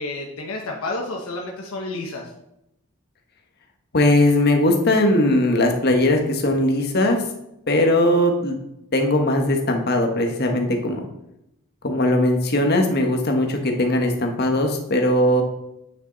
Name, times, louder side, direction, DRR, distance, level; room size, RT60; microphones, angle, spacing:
voice 1, 0.0-2.3, left 2 dB, 80° left, 0 dB, 1.1 m, -30 dB
voice 2, 3.9-7.2 7.7-8.6 8.9-11.0 11.8-15.4, left 1 dB, 45° left, 3 dB, 1.4 m, -19 dB
9.5 x 6.4 x 4.0 m, 0.84 s
head